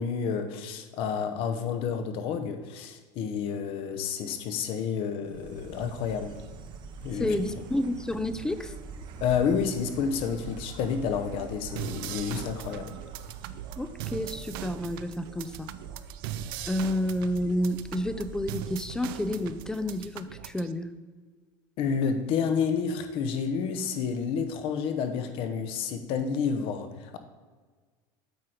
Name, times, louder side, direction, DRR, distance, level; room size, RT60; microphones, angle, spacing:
voice 1, 0.0-6.4 7.0-7.3 9.2-12.9 21.8-27.2, left 6 dB, 55° left, 8 dB, 0.9 m, -30 dB
Insect, 5.2-20.3, right 6 dB, 40° right, 0.7 m, -44 dB
voice 2, 7.2-8.7 13.8-15.7 16.7-20.9, left 1 dB, 5° left, 11 dB, 0.3 m, -30 dB
sound 1, 11.7-20.7, right 12 dB, 85° right, 0.4 m, -40 dB
8.3 x 4.5 x 4.9 m, 1.4 s
supercardioid pair, 145°, 11 cm